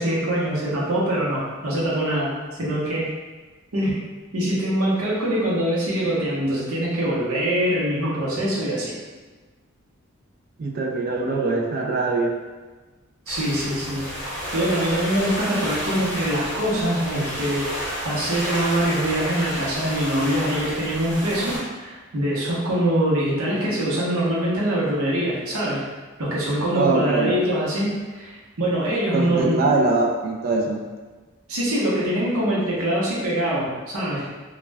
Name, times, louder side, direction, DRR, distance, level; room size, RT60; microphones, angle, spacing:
voice 1, 0.0-3.1 3.7-4.0 4.3-8.9 13.3-14.1 14.5-25.8 26.2-29.6 31.5-34.2, right 1 dB, 85° right, -6 dB, 0.8 m, -24 dB
voice 2, 10.6-12.4 26.7-27.4 29.1-30.8, right 3 dB, 45° right, 0 dB, 0.3 m, -22 dB
sound 1, 13.3-21.6, equal, 10° left, 0.7 m, -31 dB
2.3 x 2.1 x 3.3 m, 1.3 s
head